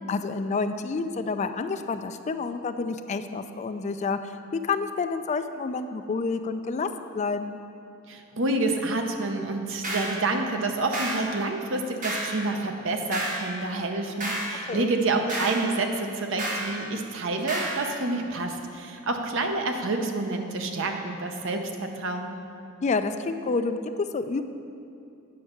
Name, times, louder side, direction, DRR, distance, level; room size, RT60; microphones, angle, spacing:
voice 1, 0.1-7.6 14.7-14.9 22.8-24.4, left 4 dB, 35° left, 9 dB, 0.3 m, -29 dB
voice 2, 8.1-22.3, right 2 dB, 60° right, 4 dB, 0.7 m, -28 dB
sound 1, 9.8-10.2 10.9-11.2 12.0-12.3 13.1-13.4 14.2-14.5 15.3-15.6 16.4-16.7 17.5-17.8, right 2 dB, 35° right, 1.4 m, -30 dB
8.6 x 5.4 x 5.8 m, 2.6 s
head